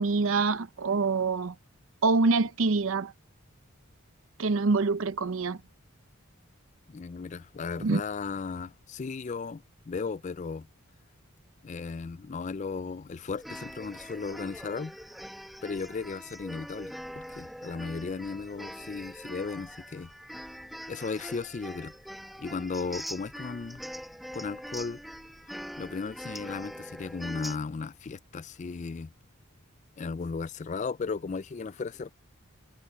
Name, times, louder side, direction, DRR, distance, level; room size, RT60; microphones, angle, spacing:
voice 1, 0.0-1.6 2.0-3.1 4.4-5.6 7.8-8.0, right 4 dB, 70° right, 0.7 m, -25 dB
voice 2, 6.9-10.7 11.6-15.0 15.6-20.1 20.9-21.9 22.4-23.8 24.3-25.0 25.8-29.1 30.0-32.1, left 4 dB, 35° left, 0.3 m, -36 dB
sound 1, 13.3-27.6, equal, ahead, 1.0 m, -43 dB
head